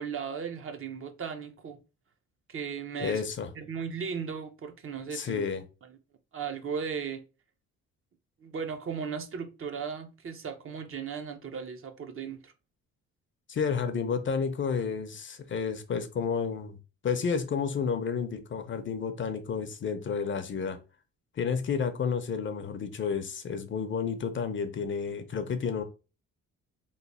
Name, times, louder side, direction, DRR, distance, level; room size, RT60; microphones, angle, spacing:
voice 1, 0.0-1.8 2.5-3.2 3.6-5.5 6.3-7.2 8.4-12.5, right 6 dB, 45° right, 0.6 m, -36 dB
voice 2, 3.0-3.5 5.1-5.6 13.5-16.8 17.0-20.8 21.4-25.8, left 6 dB, 40° left, 0.6 m, -31 dB
3.1 x 2.1 x 4.1 m
cardioid pair, 90°, 30 cm